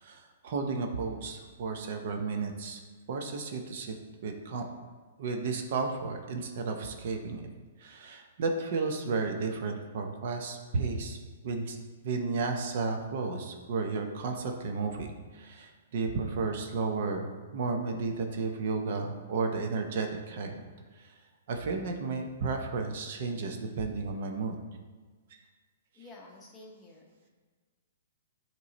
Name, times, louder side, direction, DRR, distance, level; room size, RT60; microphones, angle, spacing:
voice 1, 0.0-2.8 3.1-3.9 4.2-4.6 5.2-7.5 7.8-11.2 11.4-11.8 12.0-20.6 21.5-24.6, right 4 dB, 55° right, 4 dB, 0.6 m, -33 dB
voice 2, 25.9-27.3, left 2 dB, 15° left, -1 dB, 0.9 m, -51 dB
8.3 x 3.0 x 4.0 m, 1.4 s
hypercardioid pair, 155°, 0 cm